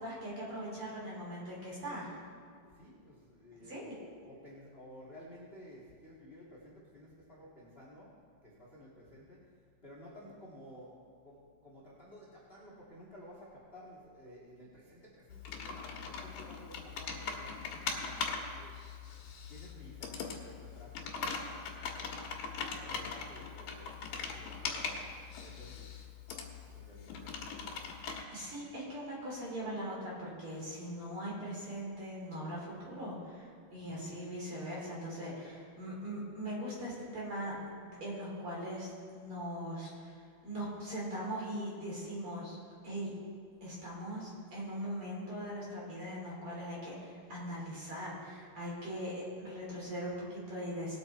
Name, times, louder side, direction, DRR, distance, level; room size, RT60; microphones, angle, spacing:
voice 1, 0.0-2.2 3.6-3.9 28.3-42.6 42.8-43.1 43.6-51.0, equal, 40° right, -5 dB, 3.9 m, -40 dB
voice 2, 2.7-3.9 4.2-8.1 8.4-9.5 9.8-18.7 19.5-22.3 22.7-25.1 25.4-25.9 26.7-27.8 33.7-34.0, equal, 25° left, -5 dB, 1.4 m, -54 dB
Computer keyboard, 15.3-28.2, left 5 dB, 80° left, 3.1 m, -41 dB
19.5 x 7.3 x 4.3 m, 2.2 s
omnidirectional pair, 4.0 m